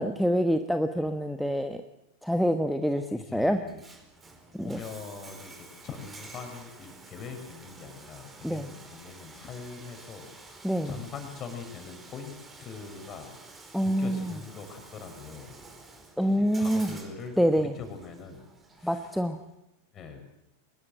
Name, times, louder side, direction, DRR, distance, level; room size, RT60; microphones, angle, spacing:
voice 1, 0.0-1.8 2.2-3.6 4.5-4.8 8.4-8.7 10.6-10.9 13.7-14.3 16.2-17.0 17.4-17.7 18.8-19.4, equal, ahead, 7 dB, 1.1 m, -26 dB
voice 2, 3.2-3.8 4.6-13.4 13.8-15.6 16.3-18.5 18.8-19.1 19.9-20.2, left 5 dB, 30° left, 6 dB, 6.2 m, -43 dB
Bathtub (filling or washing), 3.6-19.5, right 3 dB, 15° right, 4.9 m, -50 dB
24.5 x 20.5 x 7.7 m, 0.90 s
figure-of-eight pair, 90°, 0 cm